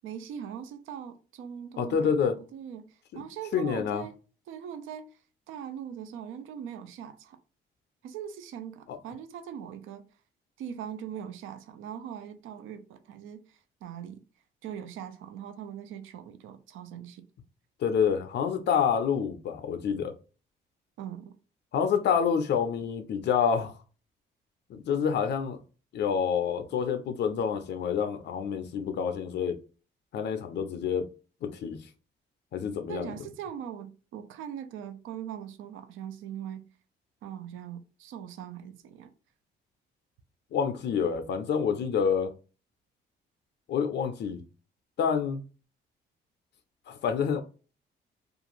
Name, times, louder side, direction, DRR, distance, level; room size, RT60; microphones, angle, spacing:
voice 1, 0.0-4.2 4.5-5.1 5.5-7.4 8.0-10.0 10.6-14.2 14.6-17.2 21.0-21.3 32.9-36.6 37.2-39.1, right 9 dB, 80° right, 0.4 m, -41 dB
voice 2, 1.8-2.4 3.1-3.2 3.5-4.0 8.9-9.0 17.8-20.1 21.7-23.8 24.7-25.6 25.9-29.6 30.1-31.0 31.4-31.8 32.5-33.1 40.5-42.3 43.7-44.4 45.0-45.4 46.9-47.4, left 7 dB, 60° left, 0.4 m, -27 dB
2.4 x 2.3 x 2.9 m
cardioid pair, 90°, 20 cm